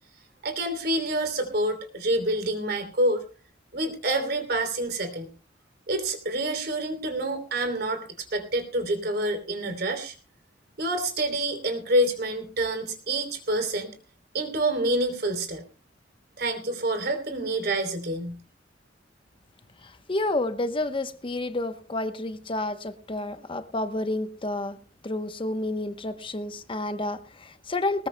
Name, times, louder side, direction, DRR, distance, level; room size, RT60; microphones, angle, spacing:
voice 1, 0.4-3.2 3.7-5.3 5.9-10.1 10.8-14.0 14.3-15.6 16.4-18.4, right 1 dB, 60° right, 7 dB, 3.1 m, -27 dB
voice 2, 19.8-24.8 25.0-28.1, left 2 dB, 30° left, 10 dB, 0.9 m, -30 dB
20.0 x 20.0 x 2.2 m, 0.36 s
head